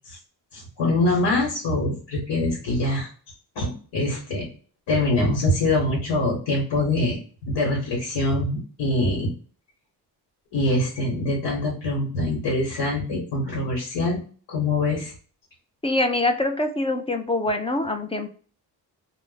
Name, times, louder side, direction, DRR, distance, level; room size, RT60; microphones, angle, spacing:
voice 1, 0.5-3.1 3.5-4.5 4.9-9.3 10.5-14.2 14.5-15.1, left 2 dB, 80° left, -3 dB, 1.2 m, -24 dB
voice 2, 15.8-18.3, left 2 dB, 15° left, 6 dB, 0.4 m, -24 dB
2.4 x 2.1 x 3.7 m, 0.41 s
cardioid pair, 90°, 42 cm